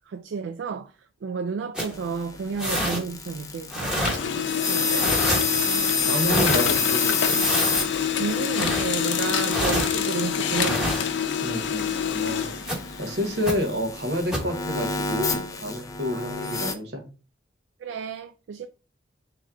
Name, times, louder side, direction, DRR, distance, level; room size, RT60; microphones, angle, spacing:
voice 1, 0.1-0.9 1.2-5.1 8.2-11.0 16.1-16.2 17.8-18.7, right 5 dB, 80° right, 0.3 m, -32 dB
sound 1, 1.7-1.9 2.6-3.0 3.7-4.2 4.9-5.4 6.2-6.6 7.3-7.8 8.5-8.8 9.5-9.9 10.5-11.0 12.6-12.8 13.4-13.5 14.3-14.5, equal, 5° right, 1.0 m, -26 dB
sound 2, 1.9-16.7, left 4 dB, 20° left, 0.4 m, -30 dB
Printer, 2.4-3.6 3.9-13.5, left 8 dB, 80° left, 0.5 m, -27 dB
voice 2, 5.5-7.4 11.4-12.5 13.0-17.0, left 1 dB, 65° right, 1.1 m, -29 dB
3.7 x 3.1 x 4.3 m
head